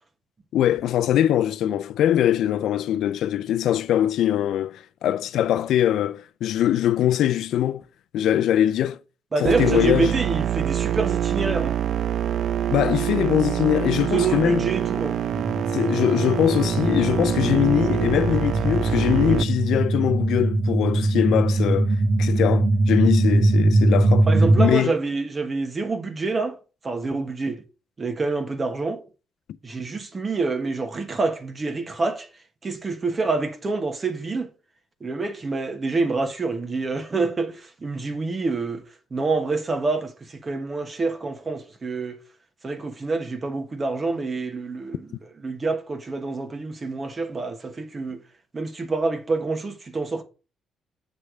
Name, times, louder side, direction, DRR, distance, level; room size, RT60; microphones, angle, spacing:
voice 1, 0.5-7.8 8.1-9.0 9.4-10.1 12.7-14.7 15.7-24.3 24.6-24.9, left 11 dB, 80° left, 0.4 m, -22 dB
voice 2, 9.3-11.8 14.1-15.2 24.3-26.6 26.8-27.6 28.0-29.0 29.6-32.3 32.6-34.5 35.0-38.9 39.1-42.2 42.6-45.1 45.4-48.2 48.5-50.2, right 3 dB, 30° right, 1.3 m, -27 dB
sound 1, 9.5-19.4, right 10 dB, 65° right, 0.4 m, -25 dB
sound 2, 15.3-24.7, right 2 dB, 50° right, 1.0 m, -21 dB
8.3 x 3.3 x 6.1 m
cardioid pair, 90°, 0 cm